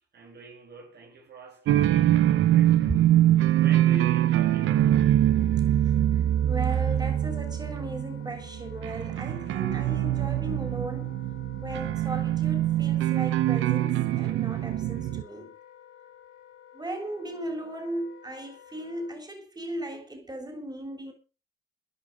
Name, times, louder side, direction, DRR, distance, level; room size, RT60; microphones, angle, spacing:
voice 1, 0.1-5.3, right 2 dB, 55° right, 6.3 m, -45 dB
sound 1, 1.7-15.2, right 12 dB, 85° right, 1.2 m, -24 dB
Wind instrument woodwind instrument, 4.2-19.1, left 10 dB, 90° left, 3.0 m, -51 dB
voice 2, 5.8-11.2 11.6-15.5 16.7-21.1, right 1 dB, 20° right, 6.4 m, -37 dB
15.0 x 11.0 x 5.4 m
cardioid pair, 90°, 20 cm